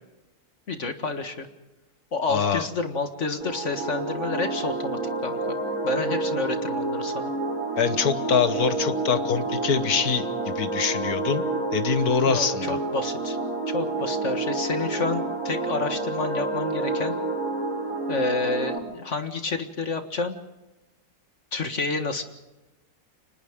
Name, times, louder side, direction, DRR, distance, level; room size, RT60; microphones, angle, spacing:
voice 1, 0.7-1.5 2.1-5.4 5.8-7.3 12.3-13.4 13.7-17.2 18.1-20.4 21.5-22.2, left 3 dB, 50° left, 7 dB, 1.9 m, -29 dB
voice 2, 2.3-2.7 7.8-11.4 11.7-12.8, left 6 dB, 70° left, 11 dB, 1.7 m, -24 dB
sound 1, 3.4-18.8, right 2 dB, 60° right, 4.7 m, -29 dB
30.0 x 25.0 x 3.7 m, 1.0 s
omnidirectional pair, 1.7 m